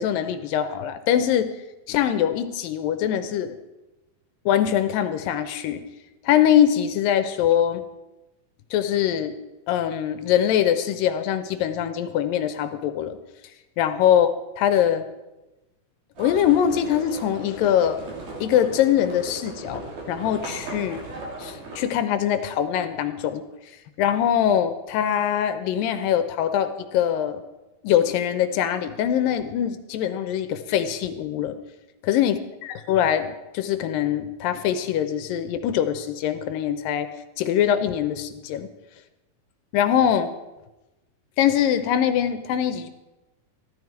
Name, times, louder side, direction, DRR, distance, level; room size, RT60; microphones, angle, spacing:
voice 1, 0.0-1.5 1.9-3.5 4.5-5.8 6.2-7.8 8.7-9.4 9.7-13.2 13.8-14.3 14.6-15.0 16.2-18.0 18.4-21.1 21.4-23.4 24.0-27.4 27.8-31.6 32.1-37.1 37.4-38.7 39.7-40.3 41.4-42.9, left 10 dB, 80° left, 10 dB, 2.3 m, -23 dB
Livestock farm animals working animals, 16.2-21.8, right 2 dB, 55° right, 4.4 m, -37 dB
15.0 x 12.5 x 4.7 m, 1.0 s
omnidirectional pair, 4.3 m